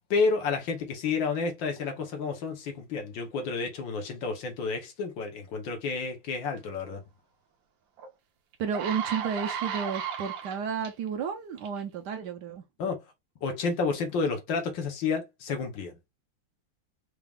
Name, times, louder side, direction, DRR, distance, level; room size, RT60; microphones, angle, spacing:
voice 1, 0.1-7.0 12.8-13.0 13.4-16.0, left 4 dB, 90° left, 1.8 m, -30 dB
sound 1, 8.0-8.1 8.5-10.9 11.6-11.8, right 7 dB, 85° right, 1.5 m, -34 dB
voice 2, 8.6-12.6, right 6 dB, 70° right, 1.2 m, -32 dB
4.7 x 2.4 x 3.4 m
omnidirectional pair, 2.0 m